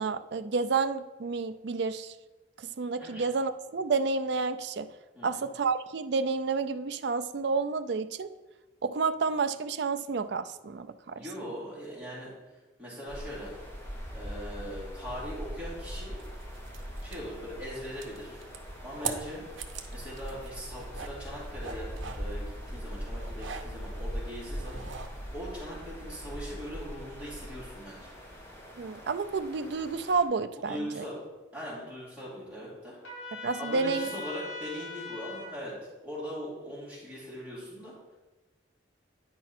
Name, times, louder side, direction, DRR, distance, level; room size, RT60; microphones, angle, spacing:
voice 1, 0.0-2.1 2.6-4.9 5.2-8.3 8.8-11.2 28.8-31.0 33.4-34.1, right 4 dB, 60° right, 11 dB, 0.4 m, -30 dB
voice 2, 11.1-12.3 12.8-13.5 14.1-16.2 17.0-18.4 18.8-19.4 19.9-28.1 30.6-31.2 31.5-33.0 33.6-35.7 36.0-37.9, equal, 5° right, -8 dB, 2.7 m, -40 dB
sound 1, 13.1-30.2, equal, 15° left, 1.2 m, -41 dB
sound 2, 16.2-25.3, right 5 dB, 85° right, 0.8 m, -44 dB
Trumpet, 33.0-35.5, left 2 dB, 80° left, 2.8 m, -41 dB
9.5 x 5.2 x 4.2 m, 1.1 s
head